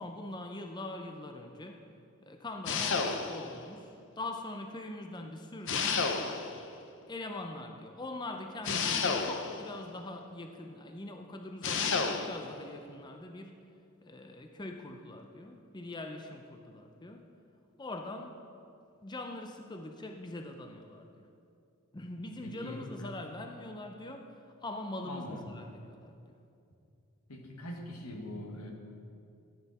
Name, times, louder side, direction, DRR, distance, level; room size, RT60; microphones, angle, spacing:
voice 1, 0.0-1.8 2.2-6.2 7.1-13.6 14.0-17.3 17.8-18.4 19.0-21.3 21.9-26.2, left 2 dB, 20° left, 4 dB, 0.5 m, -43 dB
sound 1, 2.6-3.6 5.7-6.6 8.6-9.7 11.6-12.4, left 5 dB, 55° left, 0.8 m, -31 dB
voice 2, 22.4-23.1 25.0-25.4 27.3-28.7, left 1 dB, 90° left, 1 dB, 1.7 m, -42 dB
14.0 x 9.2 x 4.2 m, 2.5 s
head